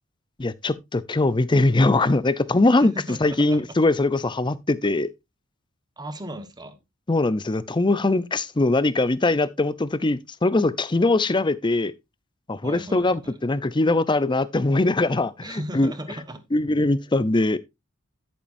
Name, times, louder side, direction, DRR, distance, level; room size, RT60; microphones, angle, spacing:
voice 1, 0.4-2.9 3.2-5.1 7.1-11.9 12.5-15.9 16.5-17.6, left 2 dB, 25° left, 0.6 m, -21 dB
voice 2, 2.7-3.7 6.0-6.8 12.6-13.4 15.4-16.5, right 1 dB, 20° right, 1.3 m, -36 dB
10.5 x 8.9 x 2.6 m
head